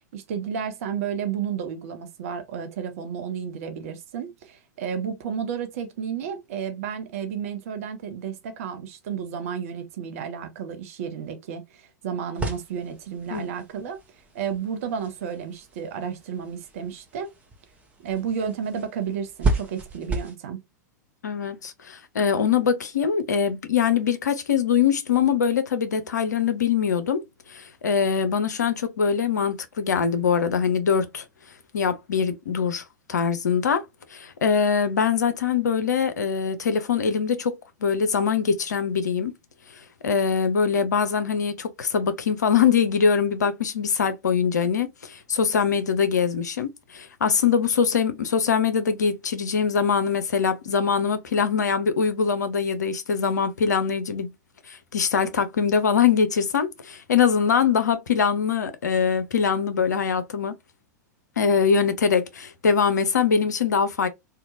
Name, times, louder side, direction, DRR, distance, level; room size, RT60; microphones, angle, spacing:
voice 1, 0.0-14.0 14.3-17.3 18.0-20.6, right 7 dB, 55° right, 0.7 m, -32 dB
sound 1, 12.3-20.4, right 2 dB, 15° right, 0.8 m, -33 dB
voice 2, 21.2-27.2 27.5-31.2 31.7-32.8 33.1-33.8 34.1-37.6 37.8-39.3 40.0-54.3 54.7-60.6 61.4-64.1, left 6 dB, 70° left, 0.5 m, -23 dB
2.8 x 2.2 x 2.5 m
figure-of-eight pair, 95°, 10 cm